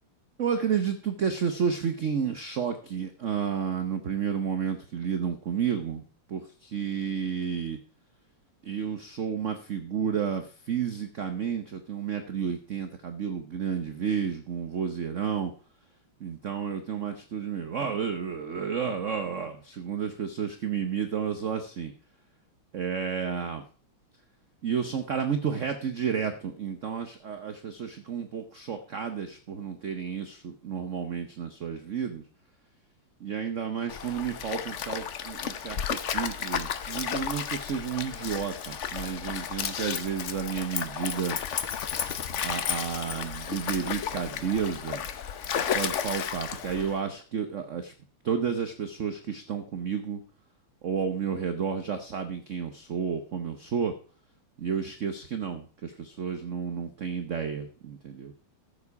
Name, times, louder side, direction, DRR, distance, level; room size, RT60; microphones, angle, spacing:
voice 1, 0.4-7.8 8.6-15.5 16.2-21.9 22.7-23.6 24.6-32.2 33.2-41.4 42.4-45.1 45.7-47.9 48.2-50.2 50.8-53.9 54.6-58.3, right 7 dB, 55° right, 8 dB, 0.9 m, -31 dB
Stream, 33.9-47.0, left 8 dB, 80° left, 0.6 m, -33 dB
13.5 x 7.3 x 4.7 m, 0.41 s
omnidirectional pair, 2.4 m